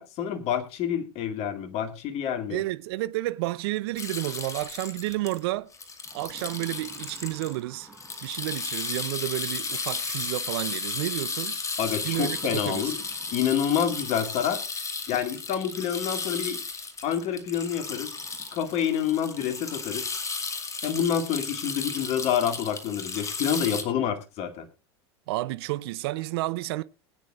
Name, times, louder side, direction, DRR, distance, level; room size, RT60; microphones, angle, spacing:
voice 1, 0.0-2.6 11.8-13.0 13.3-14.6 15.1-16.6 17.0-18.1 18.5-20.0 20.8-24.7, left 8 dB, 50° left, 2.2 m, -28 dB
voice 2, 2.5-5.7 6.1-7.9 8.2-11.6 12.0-12.9 25.3-26.8, right 18 dB, 65° right, 0.6 m, -31 dB
sound 1, 4.0-7.5 7.8-23.8, left 4 dB, 25° left, 2.2 m, -34 dB
sound 2, 5.8-9.2 10.7-11.1 11.9-14.7 15.9-16.0 17.5-20.4 20.9-21.0 21.5-21.6 21.9-22.4, right 3 dB, ahead, 5.8 m, -53 dB
20.5 x 9.6 x 2.5 m
hypercardioid pair, 90°, 14 cm